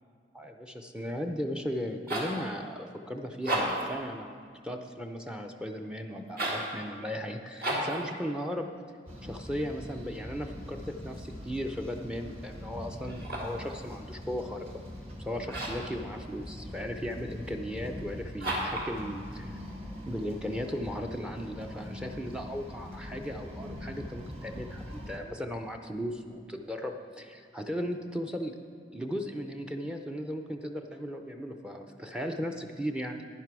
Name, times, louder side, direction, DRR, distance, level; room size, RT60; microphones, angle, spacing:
voice 1, 0.3-4.4 4.6-8.7 9.2-14.8 15.2-19.6 20.1-28.5 28.9-33.3, equal, 5° right, 4 dB, 0.5 m, -36 dB
sound 1, 1.8-2.4 3.3-3.9 6.3-6.7 7.6-8.0 13.1-13.6 15.5-15.9 18.4-18.9, right 1 dB, 60° right, 2.1 m, -32 dB
sound 2, 9.1-25.2, left 1 dB, 35° right, 1.5 m, -43 dB
11.0 x 10.5 x 4.7 m, 2.1 s
head